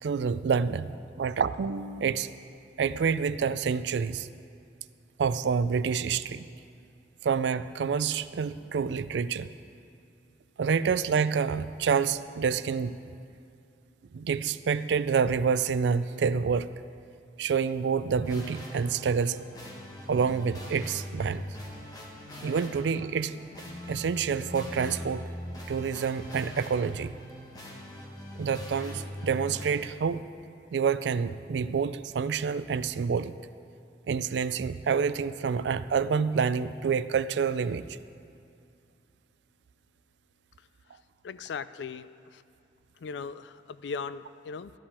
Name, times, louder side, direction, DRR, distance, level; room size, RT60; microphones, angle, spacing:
voice 1, 0.0-2.3 2.8-4.3 5.2-6.5 7.2-9.5 10.6-13.0 14.1-16.7 17.4-19.4 20.1-21.4 22.4-23.4 23.9-25.3 25.7-27.1 28.4-30.2 30.7-33.4 34.1-38.0, right 6 dB, 80° right, 14 dB, 0.4 m, -28 dB
sound 1, 18.2-29.7, left 1 dB, 20° left, 1.5 m, -41 dB
voice 2, 41.2-42.4 43.0-44.7, left 5 dB, 80° left, 15 dB, 0.4 m, -38 dB
12.5 x 12.5 x 4.3 m, 2.4 s
head